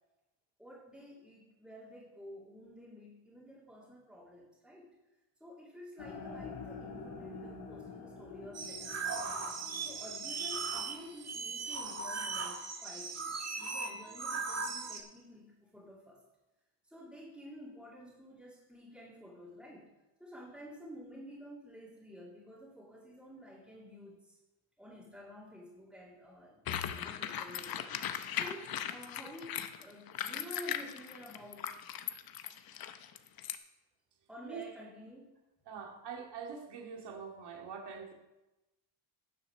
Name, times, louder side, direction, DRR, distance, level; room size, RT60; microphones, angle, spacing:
voice 1, 0.6-4.9 5.4-9.0 9.8-16.2 16.9-19.9 20.2-24.4 24.8-27.9 28.3-31.8 34.3-35.3, equal, ahead, 2.7 m, -51 dB
sound 1, 6.0-12.1, left 4 dB, 70° left, 2.7 m, -48 dB
sound 2, 8.5-15.0, right 4 dB, 35° right, 1.6 m, -38 dB
sound 3, 26.7-33.6, left 10 dB, 50° left, 0.8 m, -38 dB
voice 2, 35.7-38.1, right 6 dB, 60° right, 2.4 m, -44 dB
9.8 x 7.4 x 6.1 m
cardioid pair, 140°, 45 cm